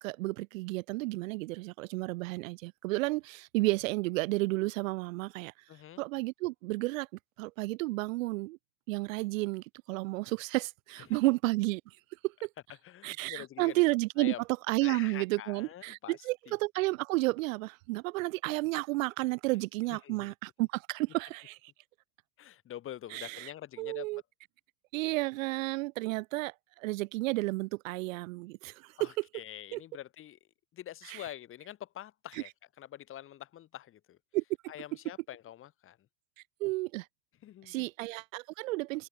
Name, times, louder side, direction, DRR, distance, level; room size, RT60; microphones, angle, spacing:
voice 1, 0.0-5.5 6.0-7.1 7.4-8.6 8.9-11.8 12.2-12.5 13.0-14.3 14.7-21.7 23.1-23.5 23.8-24.2 24.9-29.1 29.7-29.8 31.1-31.2 34.3-34.4 36.6-37.1 37.7-39.1, right 22 dB, 65° right, 0.7 m, -32 dB
voice 2, 5.7-6.0 11.1-11.2 12.8-13.8 14.2-14.4 14.8-16.2 16.5-16.6 19.9-20.3 22.4-24.1 29.0-30.4 30.7-32.5 32.8-34.2 34.7-36.0 37.4-37.9, left 12 dB, 30° left, 4.3 m, -45 dB
supercardioid pair, 150°, 42 cm